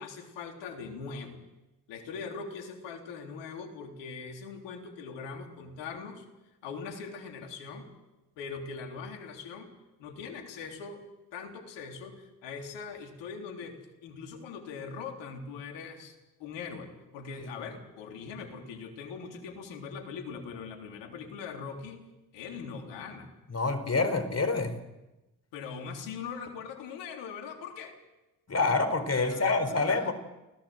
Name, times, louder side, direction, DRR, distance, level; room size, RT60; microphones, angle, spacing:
voice 1, 0.0-1.4 1.9-6.3 6.6-7.9 8.4-9.7 10.0-11.0 11.3-22.0 22.3-23.3 25.5-28.0 29.2-30.1, left 5 dB, 75° left, 5 dB, 3.6 m, -41 dB
voice 2, 23.5-24.7 28.5-30.1, left 3 dB, 35° left, 10 dB, 4.6 m, -27 dB
29.0 x 16.5 x 7.9 m, 1.0 s
hypercardioid pair, 50°, 44 cm